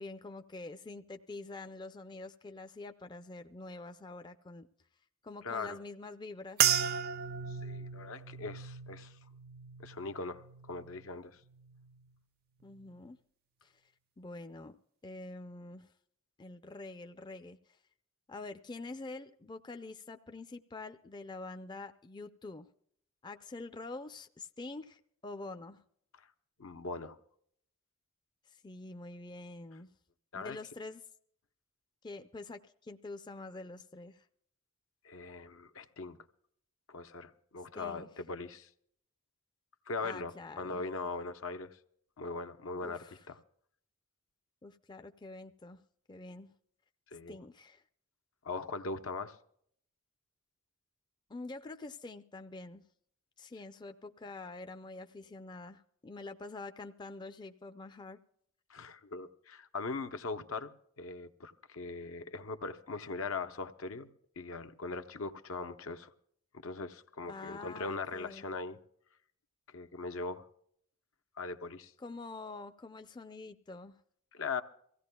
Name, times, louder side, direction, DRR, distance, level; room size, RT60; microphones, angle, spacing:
voice 1, 0.0-4.7 5.2-6.7 12.6-13.2 13.6-13.7 14.2-14.8 15.0-15.9 16.4-17.8 18.3-22.7 23.2-25.8 28.5-29.9 30.3-31.0 32.0-34.3 37.8-38.1 40.0-40.9 42.8-43.2 44.6-45.8 46.1-46.5 47.3-47.8 51.3-52.8 53.4-58.2 67.2-68.5 72.0-74.0, left 3 dB, 20° left, 0.4 m, -46 dB
voice 2, 5.4-5.8 7.5-9.1 9.8-11.4 26.6-27.2 30.3-30.6 35.0-36.2 36.9-38.7 39.9-41.8 42.2-43.4 47.1-47.4 48.4-49.3 58.7-64.1 64.4-66.1 66.6-68.8 69.7-70.5 71.4-71.9 74.3-74.6, left 3 dB, 75° left, 0.8 m, -40 dB
sound 1, 6.6-11.1 11.5-12.1 12.7-12.9, right 9 dB, 45° right, 0.5 m, -35 dB
24.0 x 16.0 x 2.2 m
head